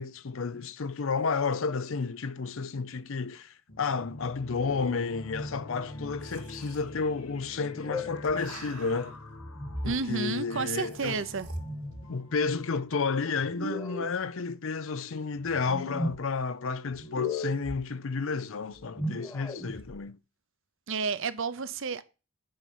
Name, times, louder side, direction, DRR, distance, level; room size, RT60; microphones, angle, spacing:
voice 1, 0.0-9.2 9.8-11.2 12.1-20.2, left 4 dB, 60° left, 0.5 m, -31 dB
sound 1, 3.7-13.9, left 1 dB, 85° left, 1.8 m, -45 dB
sound 2, 6.2-6.8 7.8-9.2 10.3-11.6, right 5 dB, 90° right, 2.5 m, -49 dB
sound 3, 7.7-8.3 9.4-10.0 11.4-12.0 13.4-14.1 15.4-16.2 16.9-17.8 18.7-20.0, left 1 dB, 15° left, 1.3 m, -35 dB
voice 2, 9.8-11.5 20.9-22.0, right 4 dB, 55° right, 0.7 m, -31 dB
8.9 x 5.5 x 5.4 m
head